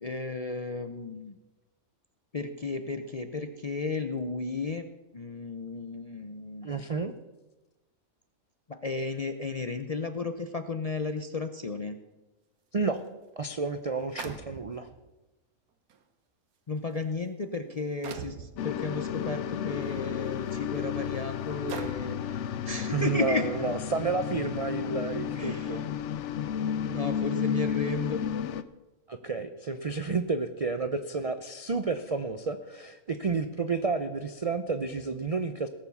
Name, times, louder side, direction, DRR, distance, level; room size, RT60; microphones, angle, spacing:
voice 1, 0.0-1.3 2.3-4.9 5.1-6.8 8.7-12.0 16.7-23.5 25.4-25.8 26.9-28.2, left 3 dB, 45° left, 8 dB, 0.5 m, -34 dB
voice 2, 6.6-7.1 12.7-13.0 13.4-14.9 22.9-25.8 29.1-35.7, right 4 dB, 60° right, 9 dB, 0.3 m, -31 dB
sound 1, 13.1-13.2 14.2-15.0 15.9-16.0 16.8-17.0 18.0-18.5 19.8-20.0 20.6-20.7 21.7-22.2, right 6 dB, 80° right, 1.5 m, -40 dB
sound 2, 18.6-28.6, left 9 dB, 65° left, 0.8 m, -32 dB
17.5 x 7.0 x 7.1 m, 1.1 s
omnidirectional pair, 1.5 m